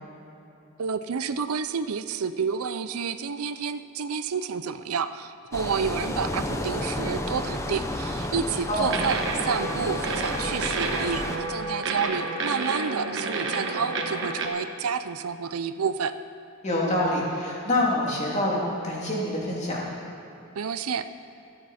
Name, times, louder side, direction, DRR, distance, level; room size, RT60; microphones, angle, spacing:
voice 1, 0.8-16.1 20.6-21.1, right 6 dB, 90° right, 12 dB, 0.6 m, -30 dB
sound 1, 5.5-11.4, left 1 dB, 15° left, 0.8 m, -31 dB
sound 2, 8.8-14.5, right 3 dB, 55° right, 1.3 m, -30 dB
voice 2, 16.6-19.8, left 1 dB, 30° left, -4 dB, 2.7 m, -26 dB
24.0 x 8.8 x 4.3 m, 2.8 s
head